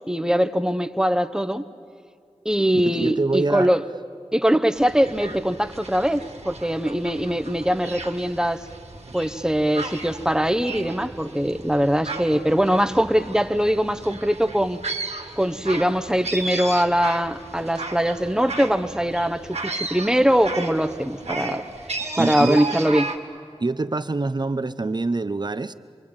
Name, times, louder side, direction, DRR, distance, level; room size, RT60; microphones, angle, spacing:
voice 1, 0.1-1.6 2.4-3.8 4.3-8.6 9.1-14.8 15.4-21.6 22.2-23.1, equal, 5° right, 1.0 m, -22 dB
voice 2, 2.9-3.7 22.2-22.6 23.6-25.7, right 3 dB, 40° right, 0.8 m, -25 dB
sound 1, 4.7-23.2, right 3 dB, 85° right, 1.9 m, -34 dB
27.5 x 22.5 x 8.8 m
wide cardioid pair, 65°, 11 cm